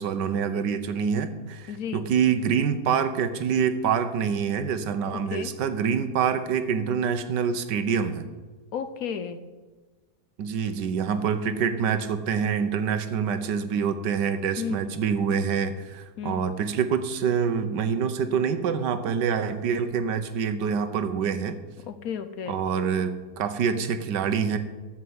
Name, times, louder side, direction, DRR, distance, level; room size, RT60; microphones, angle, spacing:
voice 1, 0.0-8.3 10.4-21.6 22.5-24.6, right 7 dB, 85° right, 10 dB, 1.5 m, -26 dB
voice 2, 1.7-2.0 5.3-5.5 8.7-9.4 14.6-14.9 16.2-16.5 21.9-22.6, left 7 dB, 65° left, 11 dB, 1.1 m, -33 dB
13.0 x 5.7 x 8.1 m, 1.3 s
omnidirectional pair, 1.8 m